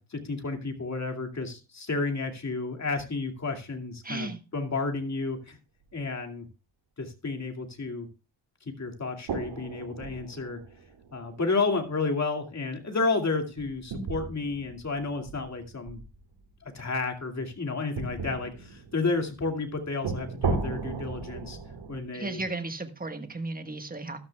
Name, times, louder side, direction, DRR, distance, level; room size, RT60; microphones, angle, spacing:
voice 1, 0.0-5.6 5.9-6.5 7.0-8.1 8.8-10.6 11.1-16.0 16.6-21.6 21.9-22.4, left 3 dB, 35° left, 2.4 m, -31 dB
voice 2, 4.0-4.4 22.1-24.2, right 2 dB, 20° right, 1.4 m, -35 dB
sound 1, 5.3-5.4 5.9-6.0 9.3-11.7 12.0-12.1 13.6-16.4 18.0-22.0, right 4 dB, 75° right, 2.0 m, -36 dB
13.5 x 12.0 x 2.3 m
cardioid pair, 100°, 46 cm